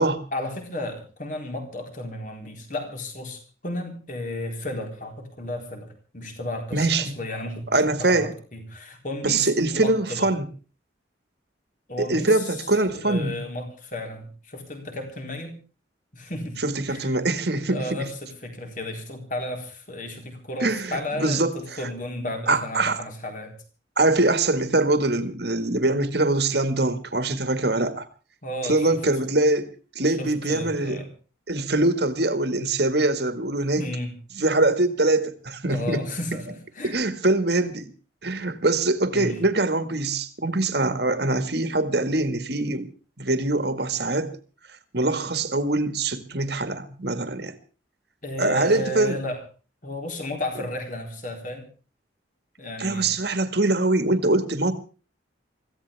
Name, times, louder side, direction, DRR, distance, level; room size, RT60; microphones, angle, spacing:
voice 1, 0.3-7.7 8.0-10.4 11.9-12.7 12.9-15.6 16.1-16.6 16.9-17.1 17.7-23.6 28.4-29.0 30.2-31.1 33.8-34.2 35.7-37.0 39.1-39.4 48.2-49.4 49.8-51.7 52.6-53.2, left 1 dB, 45° left, 4.1 m, -33 dB
voice 2, 6.7-7.2 7.7-8.3 9.2-10.5 12.1-13.4 16.6-18.0 20.6-21.6 22.5-23.0 24.0-28.1 28.7-31.0 31.5-33.8 34.4-36.0 36.8-37.9 38.2-42.9 43.2-44.3 44.9-47.5 48.4-49.2 52.8-54.7, right 2 dB, 55° right, 1.9 m, -23 dB
25.0 x 15.5 x 3.5 m
head